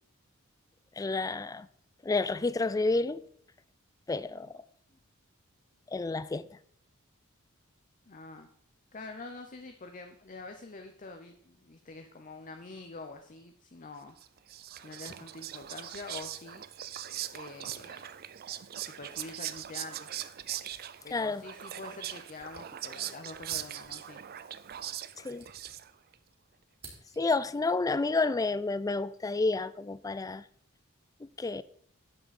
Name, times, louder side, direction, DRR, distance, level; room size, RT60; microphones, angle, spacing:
voice 1, 1.0-1.7 2.0-3.2 4.1-4.6 5.9-6.5 21.1-21.4 25.2-25.5 27.2-30.4 31.2-31.6, left 3 dB, 15° left, 0.3 m, -30 dB
voice 2, 8.1-8.5 8.9-14.2 14.8-16.6 17.3-18.2 18.9-20.2 21.0-24.2, left 3 dB, 35° left, 0.7 m, -46 dB
Whispering, 14.2-26.1, right 11 dB, 45° right, 0.5 m, -41 dB
sound 1, 21.7-22.7 22.9-23.0 23.4-24.1 24.9-26.2 26.5-27.5, right 3 dB, 25° right, 3.3 m, -54 dB
11.0 x 7.8 x 4.2 m
head